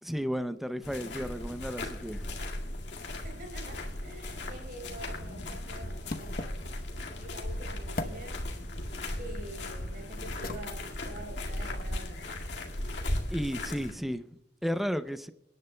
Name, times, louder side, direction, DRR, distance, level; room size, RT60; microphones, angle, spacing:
voice 1, 0.0-2.4 13.3-15.3, equal, ahead, 0.5 m, -33 dB
sound 1, 0.8-13.9, left 1 dB, 80° left, 2.0 m, -37 dB
voice 2, 3.2-6.6 7.1-8.4 9.2-12.3, right 1 dB, 55° right, 4.0 m, -46 dB
sound 2, 4.8-12.0, left 2 dB, 55° left, 0.9 m, -44 dB
29.0 x 10.5 x 2.2 m
head